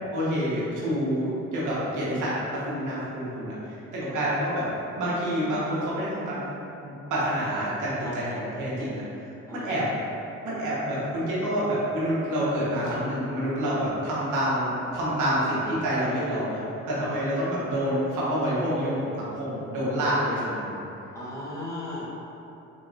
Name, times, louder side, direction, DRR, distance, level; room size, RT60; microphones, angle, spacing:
voice 1, 0.1-2.3 2.7-3.5 3.9-4.7 5.0-6.4 6.8-9.0 9.5-9.9 10.4-16.6 16.9-20.7, equal, 80° right, -8 dB, 1.2 m, -27 dB
voice 2, 8.0-8.4 9.5-9.8 17.1-17.2 21.1-22.1, left 1 dB, 10° left, -8 dB, 1.0 m, -37 dB
4.0 x 2.9 x 2.5 m, 2.9 s
cardioid pair, 90°, 30 cm